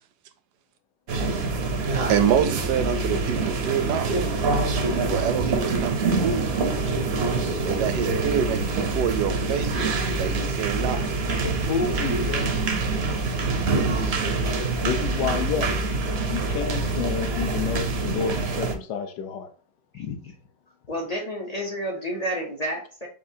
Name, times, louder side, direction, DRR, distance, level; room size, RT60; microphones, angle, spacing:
sound 1, 1.1-18.7, right 3 dB, 55° right, 0.7 m, -25 dB
voice 1, 2.1-4.1 5.1-6.6 7.7-11.0 13.4-14.3, right 8 dB, 75° right, 10 dB, 1.1 m, -27 dB
voice 2, 11.4-12.5 14.8-15.8 16.2-19.5 19.9-20.3, left 6 dB, 75° left, 8 dB, 1.2 m, -30 dB
voice 3, 20.9-23.1, equal, 60° left, -1 dB, 0.4 m, -30 dB
7.3 x 2.4 x 2.7 m, 0.40 s
omnidirectional pair, 1.9 m